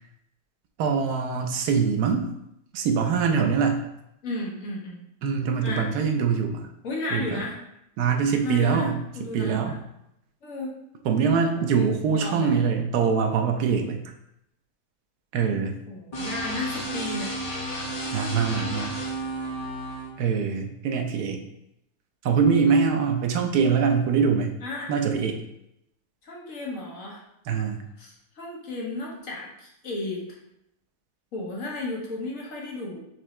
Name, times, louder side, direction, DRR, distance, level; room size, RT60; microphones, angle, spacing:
voice 1, 0.8-2.3 2.7-3.8 5.2-6.7 7.1-7.4 8.0-9.7 11.0-14.0 15.3-15.8 18.1-19.0 20.2-21.4 22.2-24.6 24.9-25.4 27.5-27.8, right 6 dB, 90° right, 4 dB, 1.2 m, -23 dB
voice 2, 4.2-5.0 5.6-5.9 6.8-7.6 8.4-9.8 10.4-10.8 11.5-12.6 15.9-17.3 24.6-24.9 26.2-27.2 28.0-30.2 31.3-33.0, left 2 dB, 60° left, -3 dB, 1.4 m, -34 dB
sound 1, 16.1-20.1, right 1 dB, 35° left, 0.7 m, -32 dB
5.9 x 2.7 x 3.1 m, 0.80 s
omnidirectional pair, 1.6 m